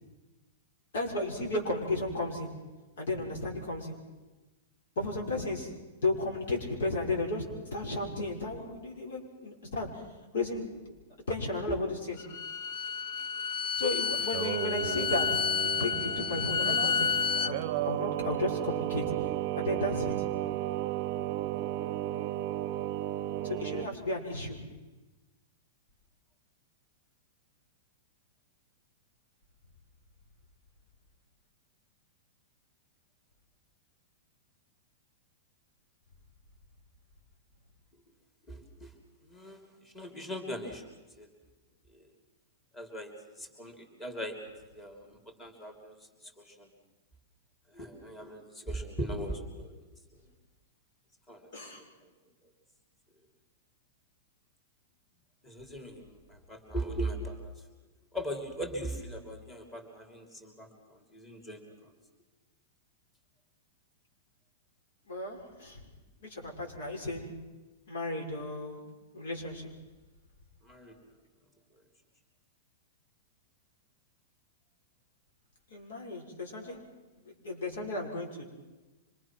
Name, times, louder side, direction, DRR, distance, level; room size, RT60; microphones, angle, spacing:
voice 1, 0.9-2.5 3.0-4.0 5.0-5.7 6.0-7.4 7.7-9.9 10.3-10.9 11.3-12.2 13.8-15.3 15.5-19.0 19.6-20.3 23.4-24.6 51.5-51.8 65.1-65.8 66.2-67.3 67.9-68.8 69.1-69.7 75.7-76.8 77.4-78.4, left 2 dB, 80° left, 0 dB, 5.9 m, -34 dB
Bowed string instrument, 12.2-17.5, left 6 dB, 50° left, 0.8 m, -30 dB
Singing, 14.1-23.9, right 14 dB, 50° right, 0.6 m, -34 dB
voice 2, 38.5-38.9 39.3-39.6 39.9-40.8 41.2-41.3 41.9-42.0 42.7-43.1 43.4-44.4 44.7-45.9 46.2-46.7 47.7-49.7 51.3-51.8 55.4-57.5 58.1-61.6 70.6-71.0, right 1 dB, 15° left, 2 dB, 3.2 m, -39 dB
26.0 x 21.0 x 6.1 m, 1.2 s
hypercardioid pair, 145°, 0 cm